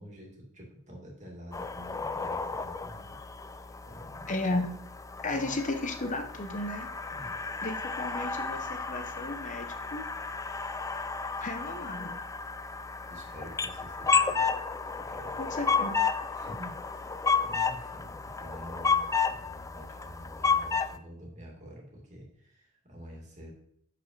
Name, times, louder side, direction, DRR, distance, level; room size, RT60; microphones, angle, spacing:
voice 1, 0.0-3.1 3.8-4.3 5.2-5.5 7.1-7.4 13.1-14.4 15.0-15.7 16.3-23.5, equal, 35° right, -2 dB, 2.3 m, -48 dB
sound 1, 1.5-21.0, left 5 dB, 15° left, 0.3 m, -32 dB
voice 2, 4.3-4.7 5.2-6.9 7.6-10.0 11.4-12.2 15.4-15.9, left 2 dB, 35° left, 6 dB, 0.9 m, -34 dB
6.5 x 5.6 x 5.5 m, 0.67 s
head